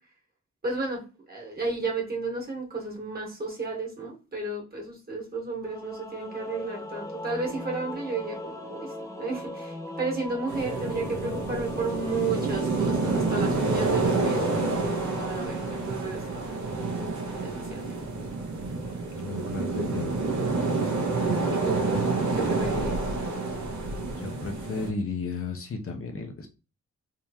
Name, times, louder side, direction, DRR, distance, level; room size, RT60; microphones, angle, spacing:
voice 1, 0.6-16.5 17.4-18.0 21.5-21.9 22.3-23.0, right 3 dB, 30° right, 1.8 m, -33 dB
Singing / Musical instrument, 5.6-16.9, left 1 dB, 10° left, 0.7 m, -39 dB
sound 1, 10.5-24.9, right 3 dB, 85° right, 1.1 m, -28 dB
voice 2, 19.2-20.2 24.2-26.5, left 4 dB, 50° left, 0.8 m, -34 dB
3.7 x 2.9 x 2.9 m
wide cardioid pair, 100°, 29 cm